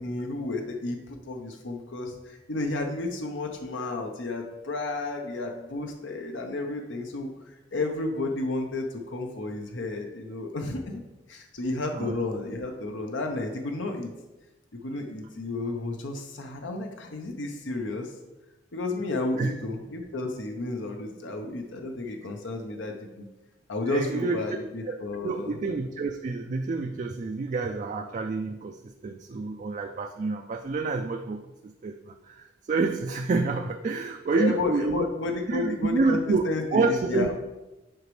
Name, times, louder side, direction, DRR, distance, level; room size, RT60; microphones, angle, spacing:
voice 1, 0.0-14.1 14.8-18.1 18.7-23.3 23.7-25.5 34.3-37.3, left 2 dB, 80° left, 3 dB, 0.8 m, -32 dB
voice 2, 23.9-24.6 24.9-25.0 25.2-35.1 35.5-36.4 36.7-37.3, right 3 dB, 40° right, 4 dB, 0.3 m, -28 dB
7.8 x 5.1 x 3.2 m, 1.0 s
head